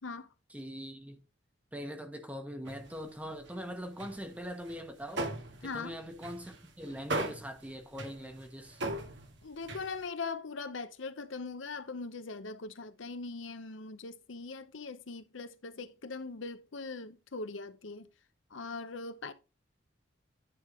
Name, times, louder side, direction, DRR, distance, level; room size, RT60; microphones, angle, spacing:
voice 1, 0.5-1.2 1.7-5.3 5.6-8.8, equal, 10° right, 1.1 m, -42 dB
sound 1, 2.7-3.6 4.0-10.1, right 2 dB, 65° right, 1.6 m, -40 dB
voice 2, 5.6-5.9 9.4-18.1 18.5-19.3, left 4 dB, 80° left, 0.8 m, -41 dB
9.9 x 3.6 x 4.8 m
head